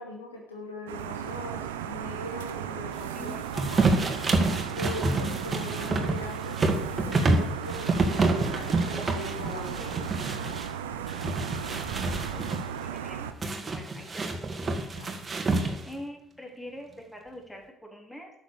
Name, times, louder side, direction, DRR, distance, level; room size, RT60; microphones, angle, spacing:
voice 1, 0.0-4.1 4.7-10.0 10.4-10.5 14.6-15.2, left 1 dB, 85° left, -1 dB, 2.3 m, -40 dB
sound 1, 0.9-13.3, right 8 dB, 75° right, 0.8 m, -36 dB
voice 2, 3.1-3.5 9.8-10.0 10.4-10.5 12.3-14.3 15.8-18.3, equal, 5° left, 0 dB, 3.7 m, -44 dB
sound 2, 3.5-10.7 11.1-12.6 13.4-16.0, right 2 dB, 30° right, 2.0 m, -28 dB
sound 3, 8.3-12.6, right 4 dB, 55° right, 1.3 m, -47 dB
12.5 x 7.0 x 6.9 m, 0.76 s
figure-of-eight pair, 50°, 0 cm